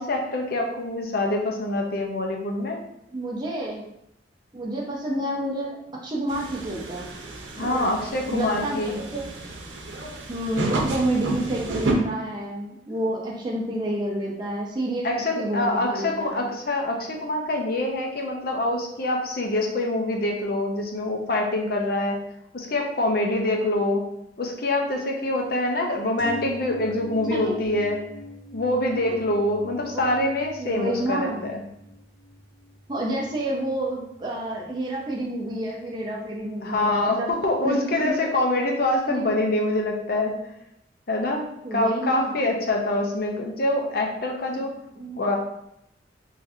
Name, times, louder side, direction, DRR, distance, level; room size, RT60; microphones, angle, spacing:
voice 1, 0.0-2.8 7.6-9.0 15.0-22.2 22.5-24.0 24.4-28.0 28.5-31.6 36.6-40.4 41.1-41.5 41.7-44.7 45.1-45.4, left 1 dB, 55° left, 1 dB, 0.7 m, -25 dB
voice 2, 3.1-3.8 4.5-7.1 7.6-7.9 8.3-9.2 10.3-16.5 27.3-27.8 29.1-29.2 29.8-30.3 30.6-31.4 32.9-37.3 37.6-38.3 39.1-39.4 41.6-42.3 44.5-44.7 44.9-45.2, right 1 dB, 25° right, -3 dB, 0.6 m, -29 dB
sound 1, 6.3-11.9, right 2 dB, 85° right, 0.7 m, -31 dB
sound 2, 26.2-36.1 36.4-36.5, left 2 dB, 50° right, 1.1 m, -43 dB
4.0 x 3.2 x 2.6 m, 0.79 s
head